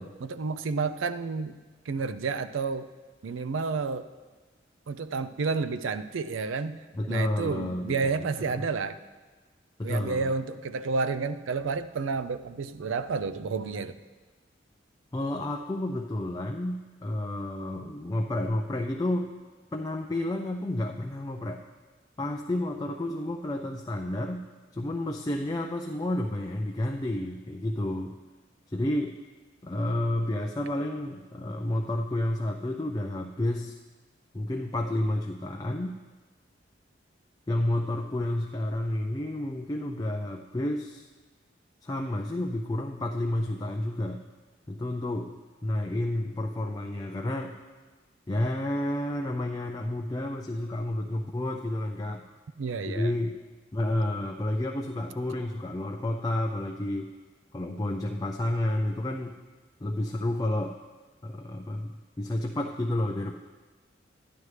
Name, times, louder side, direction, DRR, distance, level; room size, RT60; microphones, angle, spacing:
voice 1, 0.0-1.6 1.9-2.9 3.2-4.1 4.9-6.8 7.1-9.0 9.8-14.0 52.6-53.1, right 4 dB, 85° right, 11 dB, 0.4 m, -30 dB
voice 2, 6.9-8.7 9.8-10.2 15.1-19.3 19.7-21.6 22.2-24.5 24.7-28.1 28.7-29.2 29.6-33.8 34.3-36.0 37.5-41.1 41.8-44.2 44.7-47.6 48.3-52.2 52.9-53.3 53.7-57.1 57.5-59.4 59.8-60.8 61.2-63.3, left 1 dB, 20° left, 0 dB, 0.4 m, -30 dB
11.0 x 10.5 x 3.3 m, 1.3 s
head